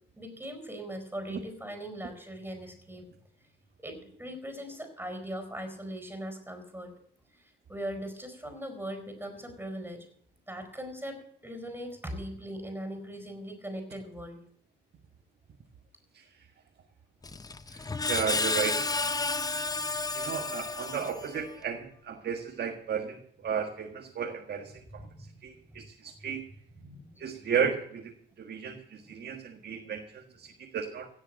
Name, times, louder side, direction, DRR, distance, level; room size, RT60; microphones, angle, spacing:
voice 1, 0.2-3.1 3.8-6.9 7.3-10.1 10.5-14.4 24.9-25.3 25.7-25.8 26.8-27.2, equal, 10° right, 6 dB, 4.7 m, -40 dB
Screech, 17.2-21.5, left 3 dB, 20° left, 0.8 m, -31 dB
voice 2, 17.7-18.9 20.1-25.1 25.4-26.4 27.2-31.1, right 7 dB, 55° right, 2 dB, 1.7 m, -34 dB
17.0 x 7.1 x 7.6 m, 0.63 s
cardioid pair, 90°, 20 cm